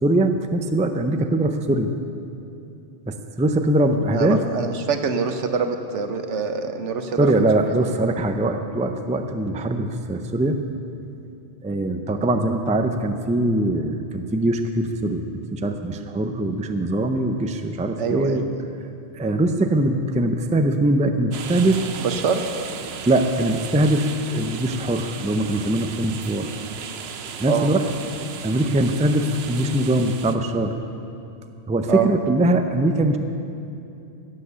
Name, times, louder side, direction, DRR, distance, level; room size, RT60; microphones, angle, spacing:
voice 1, 0.0-1.9 3.1-4.4 7.2-10.6 11.6-15.2 15.5-18.5 19.1-21.8 23.1-26.5 27.4-27.8 28.4-30.7 31.7-33.2, right 1 dB, 10° right, 6 dB, 0.4 m, -22 dB
voice 2, 4.1-7.3 18.0-18.4 22.0-22.5 27.5-27.7 31.9-32.1, right 6 dB, 80° right, 7 dB, 1.2 m, -24 dB
sound 1, 21.3-30.3, right 6 dB, 65° right, 0.9 m, -35 dB
16.5 x 7.8 x 6.8 m, 2.7 s
omnidirectional pair, 1.2 m